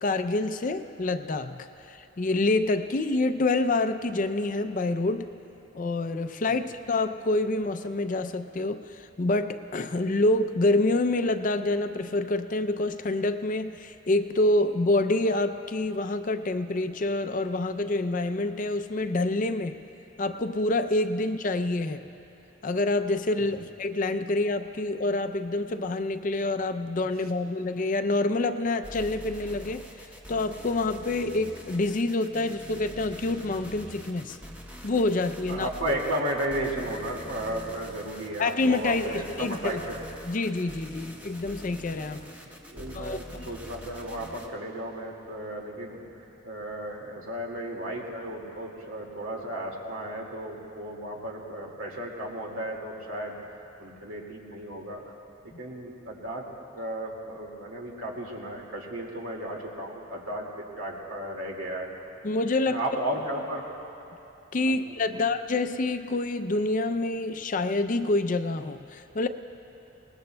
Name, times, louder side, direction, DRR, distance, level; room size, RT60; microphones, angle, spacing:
voice 1, 0.0-5.3 5.7-19.8 20.2-22.0 22.6-29.9 30.3-34.4 34.8-35.7 38.4-39.8 40.2-42.2 42.9-43.2 62.2-62.8 64.5-69.3, left 2 dB, 40° left, 9 dB, 0.4 m, -27 dB
sound 1, 28.8-44.5, equal, 10° right, 0.9 m, -44 dB
voice 2, 35.5-40.1 40.9-41.1 42.4-46.0 46.4-53.3 53.8-55.0 55.4-56.5 56.7-61.9 62.7-63.6 64.6-64.8 65.1-65.2, right 1 dB, 85° right, -1 dB, 2.1 m, -34 dB
24.0 x 19.5 x 2.2 m, 2.9 s
head